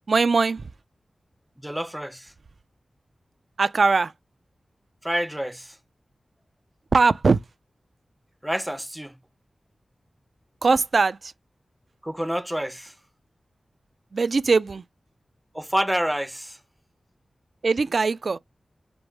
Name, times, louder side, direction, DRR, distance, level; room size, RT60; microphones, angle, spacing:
voice 1, 0.1-0.6 3.6-4.1 6.9-7.4 10.6-11.3 14.1-14.8 17.6-18.4, right 4 dB, 70° right, 0.4 m, -20 dB
voice 2, 1.6-2.3 5.0-5.8 8.4-9.1 12.0-12.9 15.5-16.6, equal, 10° right, 0.5 m, -28 dB
5.2 x 2.1 x 4.5 m
cardioid pair, 40°, 0 cm